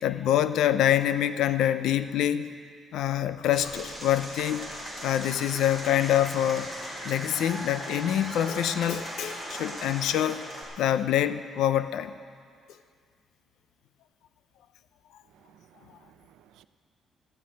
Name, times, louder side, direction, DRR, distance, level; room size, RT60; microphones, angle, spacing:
voice 1, 0.0-2.5 2.9-4.7 5.0-6.7 7.0-10.4 10.8-12.2, left 11 dB, 80° left, 13 dB, 0.6 m, -25 dB
Applause / Crowd, 3.5-10.6, equal, 5° left, 3.7 m, -38 dB
voice 2, 15.3-16.6, right 10 dB, 90° right, 12 dB, 0.5 m, -58 dB
13.5 x 9.5 x 8.9 m, 2.1 s
cardioid pair, 170°, 0 cm